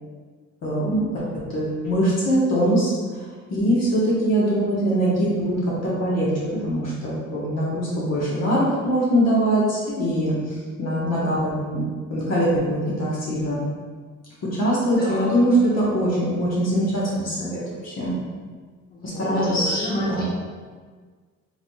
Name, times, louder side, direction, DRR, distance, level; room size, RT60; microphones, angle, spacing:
voice 1, 0.6-1.2 1.5-2.9 3.5-5.5 5.8-10.4 10.8-11.8 12.1-13.6 14.6-18.1 19.0-20.2, equal, 55° left, -7 dB, 1.2 m, -22 dB
voice 2, 15.0-15.3 19.1-20.2, equal, 30° left, -7 dB, 1.4 m, -30 dB
4.7 x 3.2 x 2.3 m, 1.5 s
cardioid pair, 90°, 30 cm